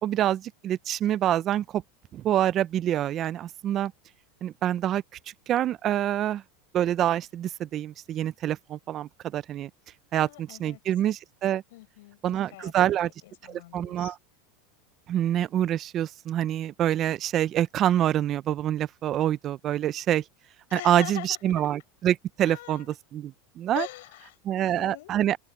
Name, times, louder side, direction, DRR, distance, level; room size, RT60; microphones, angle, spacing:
voice 1, 0.0-1.8 2.1-3.9 4.4-5.0 5.5-6.4 6.7-9.7 10.1-11.6 12.2-13.1 13.4-14.2 15.1-20.2 20.7-22.8 23.1-23.9 24.4-25.4, right 11 dB, 40° right, 0.7 m, -26 dB
voice 2, 10.2-10.8 11.7-14.2 20.7-21.7 22.4-22.9 23.7-25.1, left 18 dB, 75° left, 7.0 m, -42 dB
open air
supercardioid pair, 120°, 0 cm